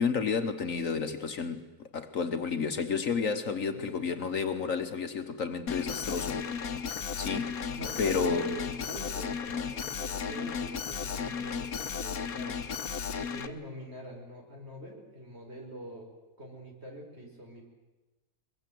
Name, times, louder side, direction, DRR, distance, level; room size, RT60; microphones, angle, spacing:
voice 1, 0.0-6.5 6.9-7.6 8.0-8.5, left 5 dB, 65° left, 7 dB, 1.6 m, -31 dB
Alarm, 5.7-13.5, left 6 dB, 85° left, 1.6 m, -34 dB
voice 2, 7.8-12.6 13.2-16.1 16.4-17.7, equal, 45° right, 0 dB, 5.4 m, -45 dB
23.0 x 22.0 x 7.8 m, 1.1 s
omnidirectional pair, 1.5 m